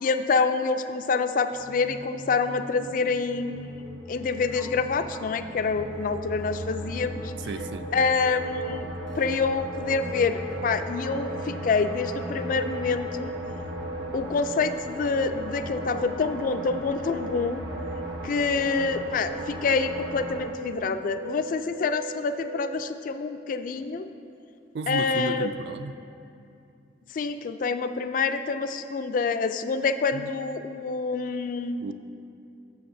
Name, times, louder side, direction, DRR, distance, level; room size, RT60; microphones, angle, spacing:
voice 1, 0.0-3.8 4.1-7.3 7.9-8.9 9.2-13.3 14.1-17.6 18.2-24.1 24.9-25.5 27.1-31.9, left 4 dB, 50° left, 10 dB, 0.3 m, -27 dB
sound 1, 1.5-20.4, equal, 85° right, 1.0 m, -37 dB
voice 2, 7.5-7.9 24.7-25.9 30.1-30.3 31.8-31.9, right 4 dB, 60° right, 10 dB, 0.3 m, -33 dB
sound 2, 7.6-22.7, right 2 dB, 45° right, 0.8 m, -39 dB
12.0 x 7.2 x 2.6 m, 2.6 s
head